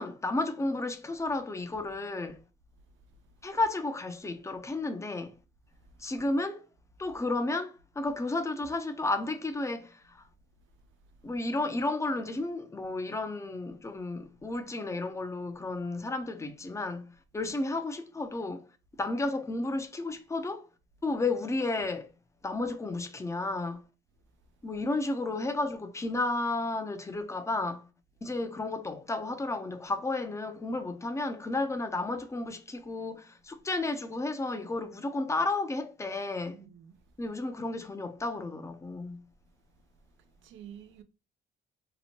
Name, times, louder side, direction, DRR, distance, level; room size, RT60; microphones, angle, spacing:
voice 1, 0.0-2.4 3.4-5.3 6.0-6.7 7.0-10.2 11.2-18.7 19.0-20.7 21.0-22.1 22.4-23.8 24.6-27.9 28.2-36.6 37.2-39.2, left 2 dB, 15° left, 0.5 m, -32 dB
voice 2, 36.5-37.0 40.4-41.0, right 9 dB, 75° right, 0.4 m, -49 dB
2.9 x 2.1 x 2.8 m
cardioid pair, 90°, 20 cm